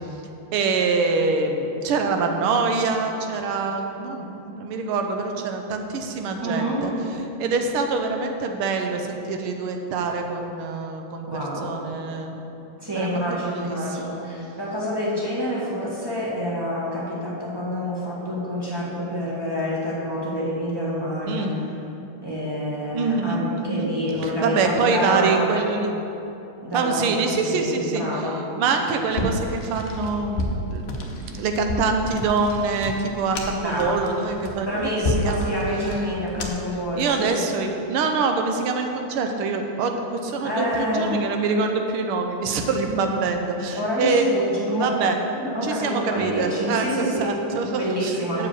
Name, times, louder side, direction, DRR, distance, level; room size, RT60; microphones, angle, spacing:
voice 1, 0.5-6.9 7.4-12.4 12.9-14.3 21.2-21.6 22.9-23.9 24.2-25.9 26.7-28.3 28.6-34.9 35.2-35.5 36.4-36.5 36.9-44.3 44.8-45.2 45.6-48.5, right 4 dB, 80° right, 4 dB, 1.6 m, -25 dB
voice 2, 6.4-6.8 11.3-11.8 12.8-21.6 22.2-25.5 26.6-28.4 33.6-34.0 34.6-37.6 40.4-41.2 43.7-45.1 45.3-47.3 47.7-48.5, equal, 15° right, -7 dB, 1.4 m, -27 dB
sound 1, 29.1-36.8, left 1 dB, 75° left, 0.5 m, -30 dB
8.0 x 4.8 x 7.1 m, 2.9 s
omnidirectional pair, 2.4 m